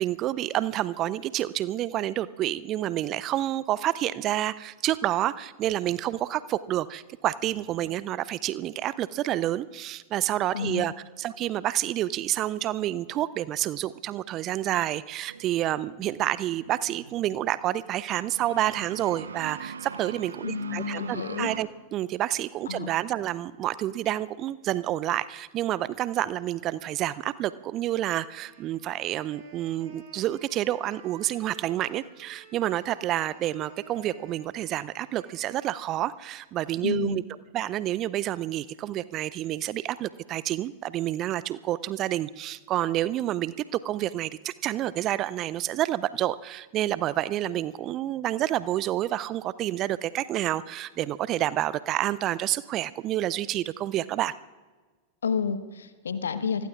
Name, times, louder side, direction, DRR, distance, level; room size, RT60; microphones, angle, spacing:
voice 1, 0.0-37.2 37.5-54.3, right 13 dB, 35° right, 18 dB, 0.5 m, -29 dB
voice 2, 10.5-10.9 20.4-21.5 22.7-22.9 36.8-37.3 55.2-56.7, left 6 dB, 70° left, 11 dB, 1.1 m, -30 dB
sound 1, 15.3-21.6, right 6 dB, 70° right, 0.9 m, -43 dB
Wind instrument woodwind instrument, 28.3-36.5, right 4 dB, 50° right, 4.3 m, -53 dB
27.5 x 20.5 x 2.4 m, 1.3 s
figure-of-eight pair, 90°, 0 cm